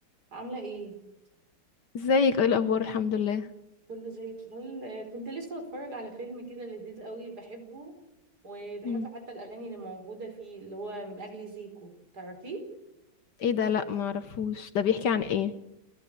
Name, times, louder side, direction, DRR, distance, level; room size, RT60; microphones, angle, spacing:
voice 1, 0.3-1.0 3.9-7.9 8.4-12.6, right 2 dB, 50° right, 5 dB, 4.9 m, -40 dB
voice 2, 1.9-3.5 8.8-9.1 13.4-15.5, left 6 dB, 65° left, 12 dB, 1.5 m, -26 dB
29.5 x 14.0 x 8.4 m, 0.91 s
omnidirectional pair, 2.2 m